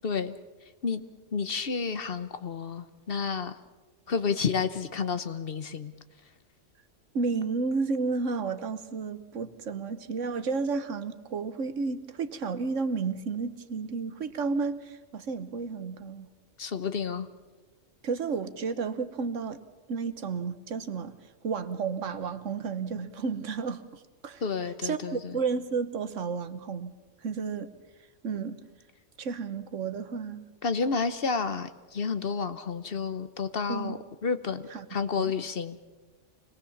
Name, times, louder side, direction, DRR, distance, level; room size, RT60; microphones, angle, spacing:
voice 1, 0.0-0.3 0.8-1.0 1.3-3.5 4.1-5.9 16.6-17.3 24.4-25.4 30.6-34.6 34.9-35.8, left 5 dB, 50° left, 11 dB, 1.1 m, -30 dB
voice 2, 7.1-16.3 18.0-19.6 19.9-21.1 21.4-24.4 24.8-26.9 27.2-27.7 28.2-28.6 29.2-30.5 33.7-33.9 34.7-34.9 35.2-35.3, right 4 dB, 75° right, 11 dB, 1.4 m, -32 dB
25.0 x 19.0 x 7.2 m, 1.2 s
omnidirectional pair, 1.3 m